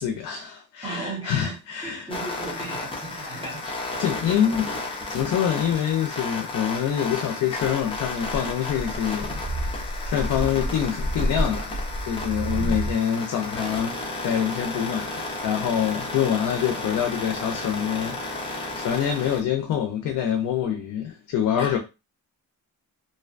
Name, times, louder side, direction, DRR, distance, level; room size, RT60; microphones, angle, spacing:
voice 1, 0.0-2.1 2.5-2.7 3.1-3.4 4.0-11.7 12.1-14.0 14.2-21.8, left 9 dB, 65° left, 0.5 m, -26 dB
voice 2, 0.8-1.6 1.8-4.4 12.5-12.7 21.6-21.8, right 3 dB, 15° right, 1.1 m, -36 dB
sound 1, 2.1-19.4, left 2 dB, 15° left, 0.6 m, -33 dB
sound 2, 7.6-12.9, equal, 55° right, 0.6 m, -30 dB
2.5 x 2.1 x 2.4 m
cardioid pair, 135°, 33 cm